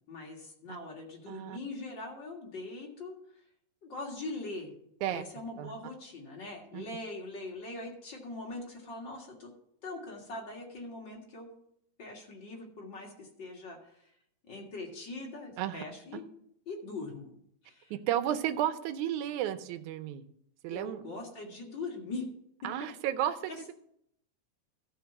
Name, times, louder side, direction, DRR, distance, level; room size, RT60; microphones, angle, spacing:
voice 1, 0.1-3.1 3.8-4.7 5.1-9.5 9.8-11.6 12.0-14.0 14.5-16.2 16.7-17.3 17.6-17.9 20.7-22.2 23.5-23.6, left 2 dB, 40° left, -1 dB, 2.3 m, -42 dB
voice 2, 1.3-1.6 5.0-5.2 5.6-5.7 6.7-6.9 15.6-15.8 16.1-16.2 17.9-20.2 20.6-21.0 22.6-23.7, right 11 dB, 75° right, 11 dB, 2.0 m, -33 dB
13.5 x 4.7 x 6.8 m, 0.72 s
omnidirectional pair, 3.7 m